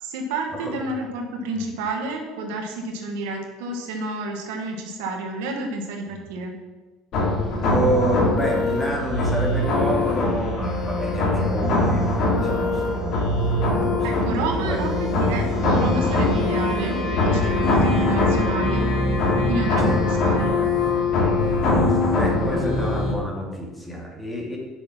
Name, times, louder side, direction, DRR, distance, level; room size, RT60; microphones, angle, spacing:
voice 1, 0.0-6.5 14.0-18.9 19.4-20.6, right 2 dB, 90° right, 2 dB, 1.4 m, -30 dB
sound 1, 7.1-23.1, left 2 dB, 60° left, 2.3 m, -22 dB
voice 2, 7.6-14.8 19.8-20.0 21.7-24.6, equal, 10° left, -2 dB, 2.3 m, -28 dB
6.4 x 6.2 x 5.8 m, 1.2 s
supercardioid pair, 115°, 0 cm